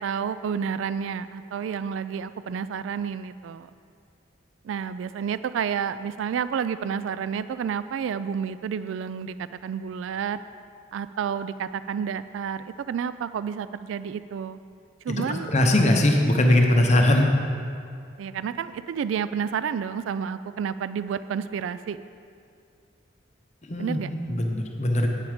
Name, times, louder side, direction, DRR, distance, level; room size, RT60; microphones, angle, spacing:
voice 1, 0.0-3.7 4.6-10.4 10.9-14.6 15.0-15.5 18.2-22.0 23.8-24.1, right 7 dB, 80° right, 13 dB, 0.3 m, -30 dB
voice 2, 15.5-17.3 23.7-24.0 24.3-25.1, left 1 dB, 40° left, 2 dB, 0.9 m, -20 dB
9.3 x 8.4 x 5.0 m, 2.3 s
head